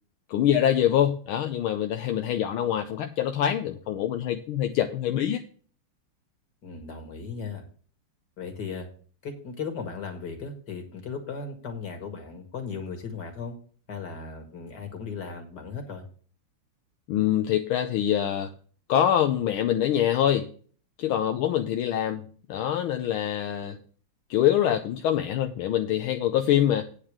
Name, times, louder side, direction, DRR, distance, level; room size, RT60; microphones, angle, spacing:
voice 1, 0.3-5.4 17.1-18.5 18.9-20.5 21.0-23.8 24.3-26.9, left 10 dB, 80° left, 6 dB, 1.5 m, -25 dB
voice 2, 6.6-7.6 8.4-8.9 9.2-13.6 13.9-16.0, left 5 dB, 50° left, 4 dB, 2.4 m, -36 dB
9.2 x 4.9 x 7.3 m, 0.43 s
omnidirectional pair, 2.3 m